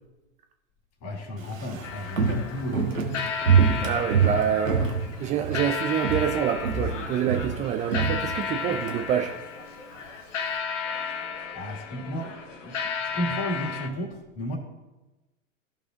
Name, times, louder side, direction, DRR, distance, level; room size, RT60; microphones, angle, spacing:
voice 1, 1.0-3.1 11.5-14.6, equal, 40° left, 2 dB, 2.2 m, -33 dB
Walk footsteps, 1.4-5.7 6.0-6.4 6.6-9.0 9.3-9.4, right 6 dB, 90° right, 1.5 m, -25 dB
sound 1, 1.8-13.9, left 6 dB, 70° left, 1.1 m, -34 dB
voice 2, 3.8-4.9 5.2-9.3, right 9 dB, 20° right, 5 dB, 0.4 m, -26 dB
14.5 x 5.4 x 2.6 m, 1.1 s
figure-of-eight pair, 95°, 39 cm